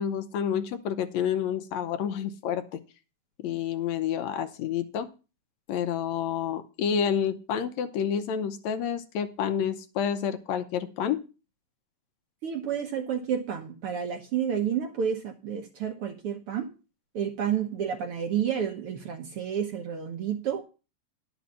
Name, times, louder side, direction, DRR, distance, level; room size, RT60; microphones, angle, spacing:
voice 1, 0.0-2.8 3.4-5.1 5.7-11.2, left 8 dB, 75° left, 10 dB, 1.9 m, -29 dB
voice 2, 12.4-16.7 17.1-20.6, right 8 dB, 65° right, 5 dB, 1.5 m, -30 dB
11.5 x 5.1 x 7.1 m, 0.33 s
omnidirectional pair, 3.4 m